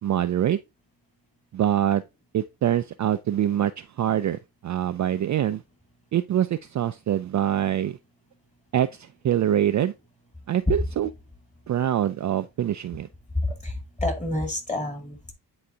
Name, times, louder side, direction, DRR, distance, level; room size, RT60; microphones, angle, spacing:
voice 1, 0.0-0.6 1.5-2.0 2.3-5.6 6.1-8.0 8.7-9.9 10.5-11.1 11.7-13.1, right 11 dB, 45° right, 0.4 m, -24 dB
voice 2, 13.4-15.3, left 1 dB, 15° left, 2.2 m, -29 dB
9.8 x 4.0 x 2.7 m
cardioid pair, 105°, 42 cm